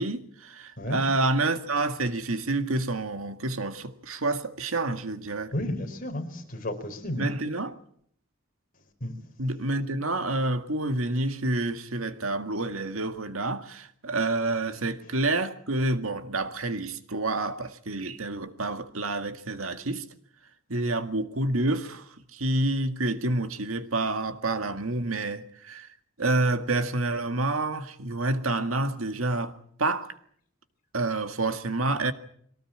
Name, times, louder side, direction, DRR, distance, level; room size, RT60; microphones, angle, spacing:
voice 1, 0.0-5.5 7.2-7.7 9.4-20.0 20.7-22.0 22.3-25.9 26.2-30.1 30.9-32.1, right 2 dB, 85° right, 1.8 m, -28 dB
voice 2, 5.5-7.3 9.0-9.1, left 1 dB, 40° left, 4.8 m, -32 dB
23.5 x 18.5 x 8.7 m
head